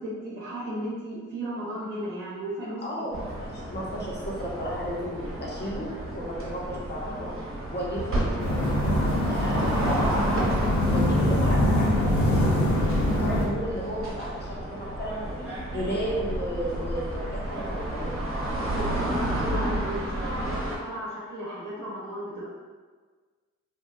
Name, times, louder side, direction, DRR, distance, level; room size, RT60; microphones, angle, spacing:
voice 1, 0.0-3.1 18.5-22.5, equal, 85° right, -7 dB, 0.6 m, -35 dB
voice 2, 2.8-7.4 7.7-8.3 8.6-10.1 10.9-15.4 15.7-18.1, equal, 35° left, -4 dB, 0.8 m, -34 dB
sound 1, 3.1-20.8, right 1 dB, 45° right, 0.7 m, -32 dB
sound 2, 8.4-13.5, left 1 dB, 65° left, 0.6 m, -23 dB
2.7 x 2.2 x 2.3 m, 1.5 s
cardioid pair, 50°, 31 cm